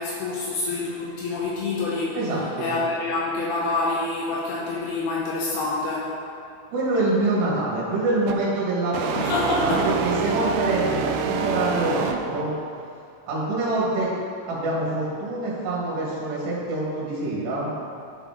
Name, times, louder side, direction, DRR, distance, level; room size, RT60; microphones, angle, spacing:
voice 1, 0.0-2.2 2.6-6.2 9.2-10.0, left 3 dB, 80° left, -4 dB, 2.4 m, -26 dB
voice 2, 2.2-2.7 6.7-9.2 9.6-12.5 13.3-14.1 14.4-17.7, right 2 dB, 65° right, -7 dB, 3.6 m, -25 dB
sound 1, 8.3-8.5 8.9-12.5, right 6 dB, 85° right, 2.5 m, -27 dB
12.0 x 4.9 x 3.7 m, 2.5 s
omnidirectional pair, 5.5 m